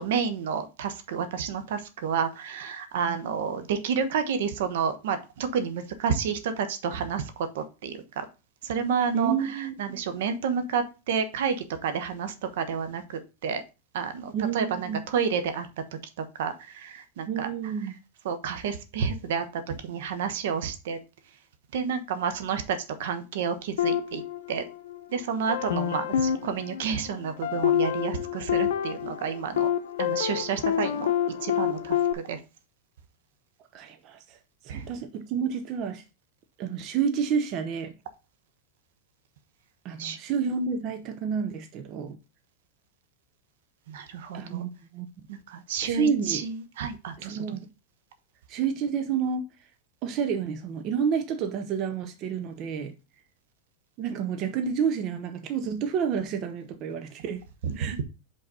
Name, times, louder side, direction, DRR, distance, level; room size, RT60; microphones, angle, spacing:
voice 1, 0.0-8.2 8.6-13.6 13.9-15.7 16.4-17.5 18.2-21.0 21.7-24.2 24.5-24.6 25.1-29.7 30.0-31.1 31.4-32.4 34.7-34.8 40.0-40.2 43.9-44.6 45.3-47.6 57.6-58.0, right 6 dB, 75° right, 1.1 m, -30 dB
voice 2, 9.1-10.0 14.3-15.0 17.3-17.9 33.7-34.4 34.6-36.0 36.6-37.9 39.8-42.2 44.3-45.1 45.8-46.4 47.2-47.7 48.5-49.5 50.0-52.9 54.0-57.4 57.7-58.0, right 7 dB, 40° right, 0.8 m, -29 dB
sound 1, 23.8-25.0 25.5-32.1, left 9 dB, 90° left, 0.7 m, -28 dB
5.4 x 4.1 x 5.5 m
supercardioid pair, 140°, 0 cm